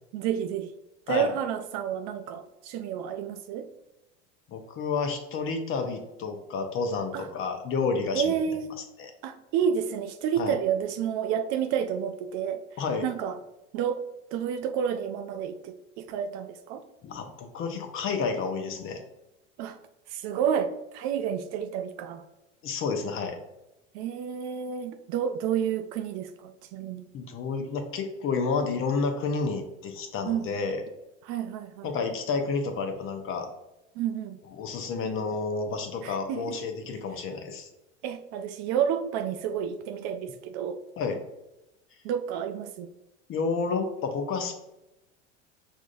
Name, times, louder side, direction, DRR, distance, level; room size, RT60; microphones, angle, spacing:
voice 1, 0.1-0.7 1.1-3.7 7.1-7.3 8.1-8.7 9.2-13.4 13.7-14.0 14.3-16.8 19.6-19.8 20.1-22.2 23.9-27.1 30.2-30.5 31.2-31.9 34.0-34.4 36.0-36.6 38.0-40.8 42.0-42.9, right 8 dB, 45° right, 8 dB, 0.4 m, -30 dB
voice 2, 4.5-8.4 9.0-9.1 10.4-10.6 12.8-13.1 17.0-19.0 22.6-23.4 27.1-30.8 31.8-33.5 34.6-37.7 41.0-41.2 43.3-44.6, left 4 dB, 35° left, 5 dB, 0.8 m, -30 dB
6.0 x 2.6 x 2.5 m, 0.94 s
hypercardioid pair, 85°, 36 cm